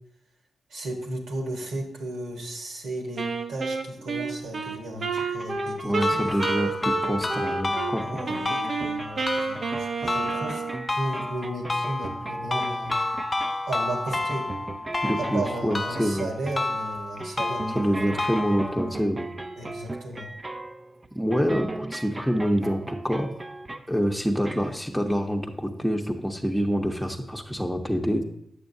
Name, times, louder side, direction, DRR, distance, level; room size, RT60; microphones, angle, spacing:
voice 1, 0.7-6.4 8.0-10.6 10.9-13.1 13.7-14.5 15.2-18.2 19.6-20.3, right 1 dB, 85° right, 0 dB, 1.4 m, -34 dB
Wind instrument woodwind instrument, 3.2-7.9 8.3-10.9, right 4 dB, 65° right, 0.7 m, -30 dB
sound 1, 5.1-24.0 24.4-24.8, right 2 dB, 30° right, 0.5 m, -38 dB
voice 2, 5.8-8.1 15.0-16.3 17.7-19.3 21.1-23.3 23.9-28.2, equal, ahead, 0 dB, 0.9 m, -26 dB
sound 2, 6.0-19.0, left 2 dB, 30° left, 0.4 m, -31 dB
8.5 x 6.8 x 2.7 m, 0.76 s
supercardioid pair, 45°, 0 cm